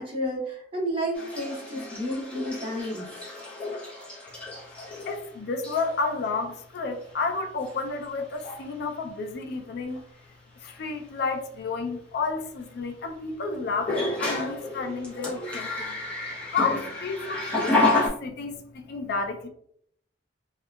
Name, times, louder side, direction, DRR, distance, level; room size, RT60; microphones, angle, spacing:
voice 1, 0.0-3.2, equal, 30° right, -3 dB, 0.9 m, -31 dB
sound 1, 1.1-5.3 5.6-6.0 7.0-7.1 7.6-8.1 8.3-8.6 10.7-10.8 13.8-18.1, left 2 dB, 5° left, 0.8 m, -30 dB
voice 2, 5.1-10.0 10.6-16.0 16.5-19.5, left 4 dB, 60° left, 5 dB, 0.4 m, -31 dB
2.7 x 2.2 x 2.2 m, 0.67 s
head